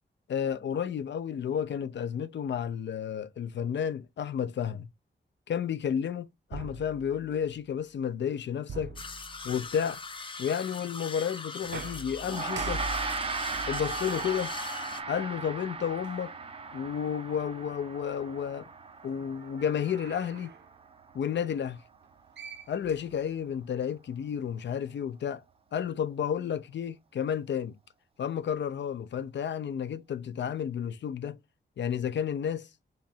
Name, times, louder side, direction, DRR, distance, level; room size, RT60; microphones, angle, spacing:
voice 1, 0.3-4.9 5.5-9.0 9.4-10.0 10.4-12.8 13.7-14.6 15.1-16.3 16.7-18.7 19.0-20.5 21.1-21.8 22.7-25.4 25.7-27.8 28.2-31.4 31.8-32.7, left 8 dB, 80° left, 0.5 m, -31 dB
sound 1, 6.5-7.6 8.7-9.8 11.6-15.2 16.0-16.1 19.4-20.7 22.0-22.1 22.4-23.6, right 4 dB, 75° right, 0.7 m, -44 dB
sound 2, 9.0-15.0, left 4 dB, 30° left, 0.5 m, -41 dB
Gong, 12.2-21.9, right 4 dB, 30° right, 0.6 m, -37 dB
3.7 x 3.2 x 4.3 m
wide cardioid pair, 180°, 18 cm